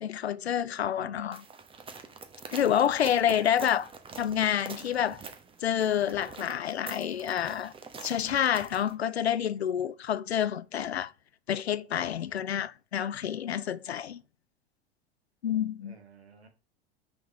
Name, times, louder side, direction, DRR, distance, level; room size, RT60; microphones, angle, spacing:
voice 1, 0.0-1.4 2.5-3.9 4.2-5.2 5.6-7.7 8.0-11.1 11.5-14.2 15.4-15.9, left 9 dB, 85° left, 0.5 m, -28 dB
voice 2, 1.0-1.3 3.3-3.8 15.8-16.5, right 3 dB, 90° right, 1.9 m, -52 dB
sound 1, 1.3-8.9, right 5 dB, 15° right, 1.0 m, -45 dB
6.0 x 4.6 x 4.7 m
figure-of-eight pair, 90°, 31 cm